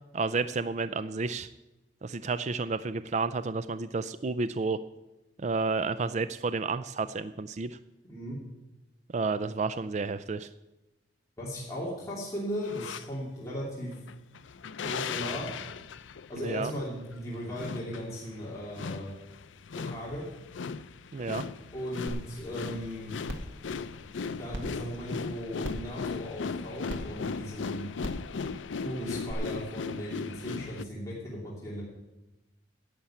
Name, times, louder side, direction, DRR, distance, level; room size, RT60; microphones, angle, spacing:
voice 1, 0.1-1.5 2.0-4.8 5.4-7.8 9.1-10.5 16.4-16.7 21.1-21.5, right 4 dB, 40° right, 13 dB, 0.4 m, -31 dB
voice 2, 11.4-13.9 14.8-15.5 16.3-19.1 19.8-20.2 21.7-23.1 24.2-27.9 28.8-31.8, equal, 15° left, -7 dB, 2.8 m, -37 dB
sound 1, 12.6-13.1 13.9-30.9, left 5 dB, 85° left, 0.5 m, -38 dB
sound 2, 22.1-22.2 22.6-22.7 23.2-23.5 24.5-24.6 25.6-25.9 26.9-27.0 28.0-28.2 29.3-29.4, equal, 90° right, 1.9 m, -36 dB
11.5 x 7.9 x 8.8 m, 0.99 s
head